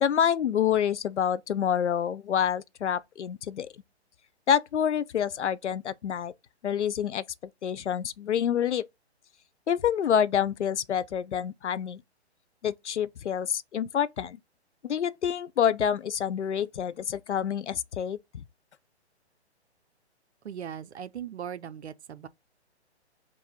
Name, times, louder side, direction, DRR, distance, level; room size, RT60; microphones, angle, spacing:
voice 1, 0.0-3.7 4.5-6.3 6.6-7.2 7.6-8.9 9.7-12.0 12.6-14.4 14.8-18.2, left 8 dB, 80° left, 0.5 m, -27 dB
voice 2, 20.4-22.3, right 9 dB, 70° right, 0.5 m, -39 dB
3.7 x 2.6 x 4.1 m
figure-of-eight pair, 130°, 34 cm